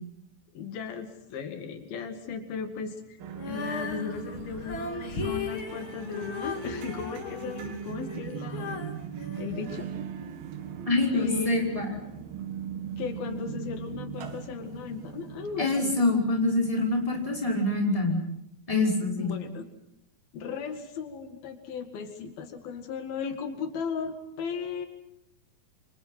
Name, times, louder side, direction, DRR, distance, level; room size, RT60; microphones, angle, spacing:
voice 1, 0.5-3.0 3.5-8.8 9.4-9.9 11.1-11.6 13.0-15.9 19.2-19.6 20.3-24.9, left 6 dB, 90° left, 7 dB, 4.0 m, -36 dB
sound 1, 3.2-17.8, right 8 dB, 90° right, 3.8 m, -40 dB
Female singing, 3.3-10.4, left 4 dB, 35° left, 3.2 m, -37 dB
voice 2, 10.9-12.0 15.6-18.2 18.7-19.3, left 2 dB, 10° left, 0 dB, 5.5 m, -25 dB
29.5 x 25.5 x 5.8 m, 0.78 s
omnidirectional pair, 4.1 m